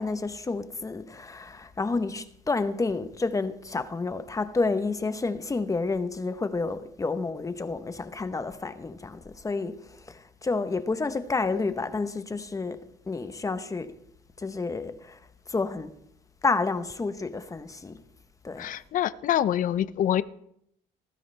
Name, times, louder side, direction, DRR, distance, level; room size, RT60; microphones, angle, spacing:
voice 1, 0.0-14.0 14.4-15.2 15.5-15.9 16.4-18.0 18.4-18.7, left 3 dB, 20° left, 1.0 m, -30 dB
voice 2, 18.6-20.2, left 11 dB, 50° left, 0.6 m, -25 dB
19.0 x 14.0 x 3.4 m
cardioid pair, 110°, 17 cm